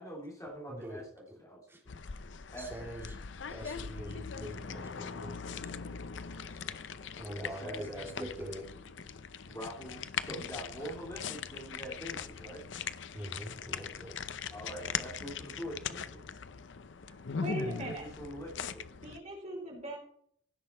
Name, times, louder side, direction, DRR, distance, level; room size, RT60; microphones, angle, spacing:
voice 1, 0.0-2.0 2.5-2.9 7.2-8.5 9.5-12.6 14.5-16.3 17.4-19.0, equal, 20° left, -3 dB, 2.9 m, -44 dB
voice 2, 0.7-1.0 1.3-1.4 1.7-1.8 2.6-3.2 3.5-5.8 6.5-6.6 7.2-8.6 13.1-14.1, equal, 15° right, -2 dB, 3.4 m, -44 dB
sound 1, 1.9-19.2, left 6 dB, 90° left, 0.7 m, -41 dB
voice 3, 17.4-18.0 19.0-20.0, right 1 dB, 40° right, -1 dB, 4.3 m, -39 dB
16.0 x 6.7 x 4.3 m, 0.62 s
head